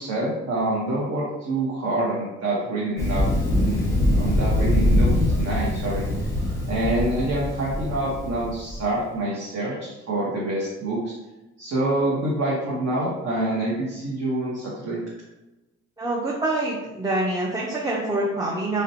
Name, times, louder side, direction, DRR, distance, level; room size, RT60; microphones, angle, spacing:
voice 1, 0.0-6.3 6.7-11.1 11.6-15.0, right 1 dB, 60° right, -5 dB, 0.7 m, -26 dB
Thunder, 3.0-8.8, left 1 dB, 10° left, 0.8 m, -23 dB
voice 2, 16.0-18.8, right 2 dB, 10° right, -4 dB, 0.4 m, -25 dB
2.6 x 2.1 x 2.6 m, 1.0 s
cardioid pair, 90°, 30 cm